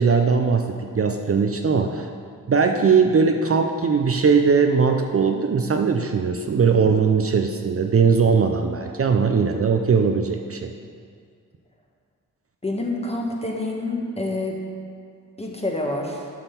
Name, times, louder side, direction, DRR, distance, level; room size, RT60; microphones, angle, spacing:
voice 1, 0.0-2.1 2.5-10.7, right 5 dB, 45° right, 5 dB, 0.5 m, -20 dB
voice 2, 12.6-14.6 15.4-16.3, left 2 dB, 20° left, 0 dB, 1.3 m, -27 dB
10.0 x 3.9 x 6.9 m, 2.2 s
cardioid pair, 80°, 33 cm